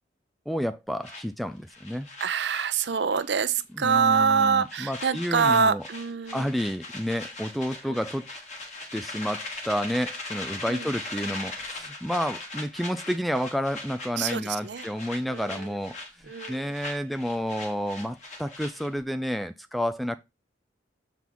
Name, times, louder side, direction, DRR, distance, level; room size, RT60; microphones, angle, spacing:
voice 1, 0.5-2.1 3.7-5.8 6.3-8.3 8.9-16.0 16.5-20.2, equal, ahead, 0.3 m, -30 dB
Little Balls, 1.0-3.3 3.5-3.8 4.1-19.0, left 2 dB, 40° left, 1.7 m, -40 dB
voice 2, 2.2-6.5 7.8-8.0 10.7-10.9 14.2-14.8 15.3-15.8 16.3-16.7, right 6 dB, 75° right, 0.6 m, -25 dB
7.0 x 4.5 x 4.0 m
head